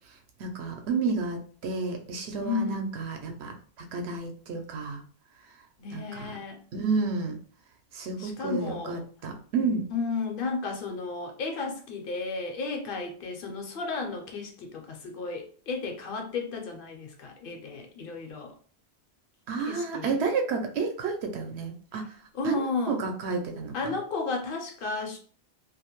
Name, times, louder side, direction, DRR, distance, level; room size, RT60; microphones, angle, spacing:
voice 1, 0.4-3.5 3.9-5.0 5.9-6.4 6.7-7.3 7.9-9.9 19.5-22.0 22.4-23.7, right 4 dB, 80° right, 4 dB, 0.8 m, -31 dB
voice 2, 2.4-2.9 5.8-6.6 8.2-9.0 9.9-18.5 19.6-20.2 22.3-23.0 23.7-25.2, left 4 dB, 60° left, 3 dB, 0.7 m, -33 dB
2.3 x 2.0 x 2.9 m, 0.44 s
omnidirectional pair, 1.1 m